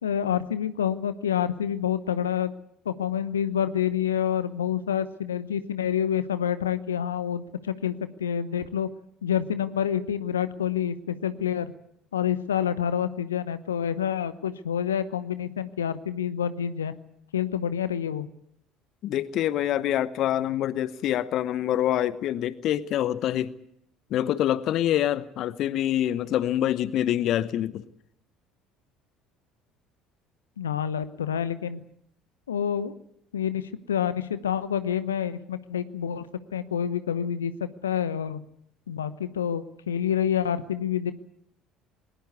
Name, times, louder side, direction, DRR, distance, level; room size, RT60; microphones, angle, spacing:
voice 1, 0.0-2.5 2.8-7.9 8.2-8.9 9.2-11.7 12.1-16.9 17.3-18.3 30.6-31.8 32.5-32.9 33.3-33.6 33.9-36.3 36.5-38.4 38.9-41.1, left 9 dB, 80° left, 13 dB, 0.9 m, -28 dB
voice 2, 19.0-23.5 24.1-27.8, left 12 dB, 55° left, 17 dB, 0.9 m, -26 dB
21.0 x 19.5 x 8.3 m, 0.70 s
figure-of-eight pair, 60°, 0 cm